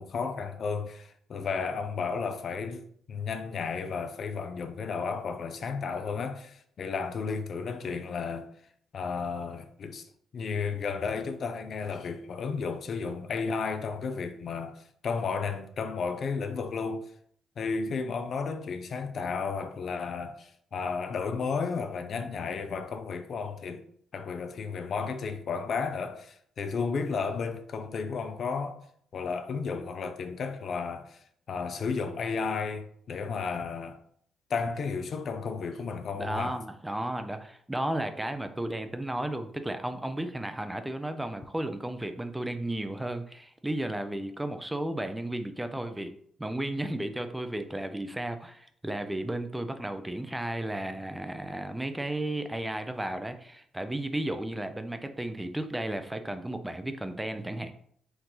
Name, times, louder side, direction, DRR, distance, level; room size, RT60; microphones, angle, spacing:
voice 1, 0.0-2.8 3.1-8.5 8.9-10.1 10.3-17.0 17.6-23.8 24.1-28.8 29.1-31.2 31.5-34.0 34.5-36.6, left 5 dB, 55° left, 0.5 m, -33 dB
voice 2, 36.1-46.1 46.4-57.7, right 1 dB, 10° right, 0.5 m, -34 dB
4.6 x 2.6 x 3.8 m
cardioid pair, 90°, 0 cm